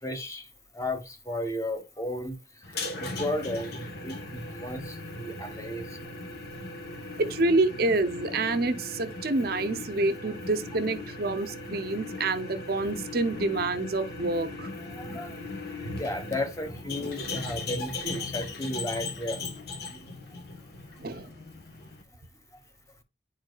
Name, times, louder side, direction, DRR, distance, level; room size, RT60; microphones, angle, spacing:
voice 1, 0.0-6.0 14.9-15.4 15.9-19.5 19.9-20.1 22.5-22.6, left 1 dB, 15° left, 1.1 m, -34 dB
sound 1, 2.6-22.0, left 3 dB, 60° left, 1.3 m, -38 dB
voice 2, 7.2-14.7 21.0-21.3, right 2 dB, 55° right, 0.6 m, -27 dB
10.0 x 4.5 x 2.3 m
head